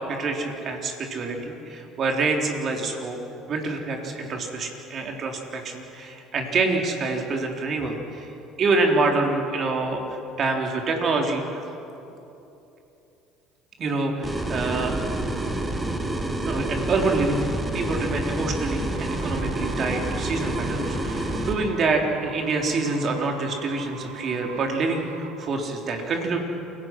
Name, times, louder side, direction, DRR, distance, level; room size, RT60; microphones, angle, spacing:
voice 1, 0.1-3.2 3.5-8.3 8.6-11.6 13.8-14.9 16.5-17.5 17.7-26.4, right 3 dB, 50° right, 2 dB, 3.7 m, -26 dB
sound 1, 14.2-21.5, right 1 dB, 20° right, 3.0 m, -28 dB
sound 2, 18.9-25.9, right 8 dB, 85° right, 1.3 m, -42 dB
29.0 x 17.5 x 6.2 m, 2.9 s
hypercardioid pair, 65°, 0 cm